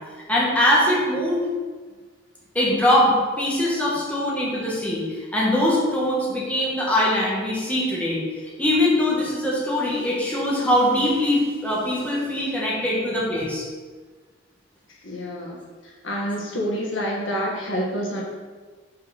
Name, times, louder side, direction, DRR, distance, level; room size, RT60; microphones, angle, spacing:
voice 1, 0.3-1.4 2.5-8.2 8.6-13.6, left 1 dB, 5° left, -6 dB, 1.7 m, -22 dB
voice 2, 15.0-15.6 16.0-18.2, equal, 75° left, -2 dB, 1.6 m, -27 dB
6.0 x 4.7 x 5.9 m, 1.4 s
head